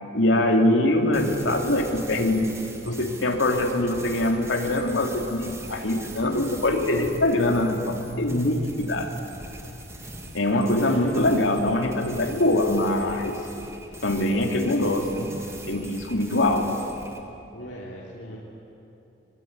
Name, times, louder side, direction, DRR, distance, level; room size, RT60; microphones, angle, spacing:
voice 1, 0.1-2.5 2.9-9.1 10.3-13.4 14.0-15.3 15.7-16.7, left 1 dB, 90° left, 3 dB, 2.9 m, -23 dB
sound 1, 1.1-17.2, right 1 dB, 15° right, 2.4 m, -41 dB
voice 2, 10.6-11.1 17.5-18.4, equal, 70° left, -4 dB, 3.2 m, -39 dB
24.0 x 21.0 x 9.6 m, 2.8 s
head